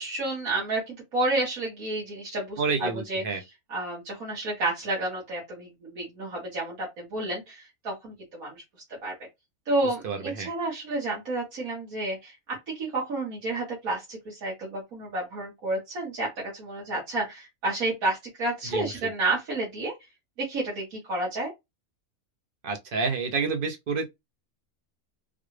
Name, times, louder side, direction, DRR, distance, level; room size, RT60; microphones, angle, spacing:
voice 1, 0.0-3.2 3.7-8.6 9.0-9.1 9.7-12.3 12.7-19.9 20.4-21.5, right 2 dB, 75° right, 1.9 m, -30 dB
voice 2, 2.6-3.4 10.0-10.5 18.6-19.1 22.6-24.1, right 4 dB, 50° right, 0.8 m, -29 dB
3.8 x 2.4 x 3.2 m
omnidirectional pair, 1.5 m